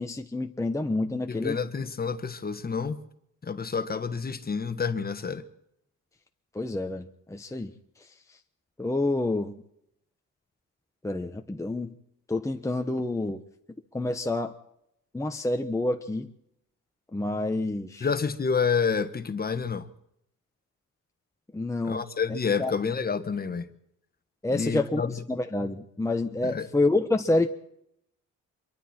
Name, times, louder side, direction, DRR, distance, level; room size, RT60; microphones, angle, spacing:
voice 1, 0.0-1.6 6.5-7.7 8.8-9.6 11.0-11.9 12.3-13.4 13.9-14.5 15.1-16.3 17.1-18.1 21.5-22.0 22.6-22.7 24.4-27.5, left 2 dB, 10° left, 1.1 m, -28 dB
voice 2, 1.3-3.0 3.4-5.4 18.0-19.9 21.8-23.7 24.5-25.1 26.4-26.7, left 5 dB, 30° left, 1.5 m, -28 dB
25.0 x 23.0 x 4.5 m
cardioid pair, 90°, 30 cm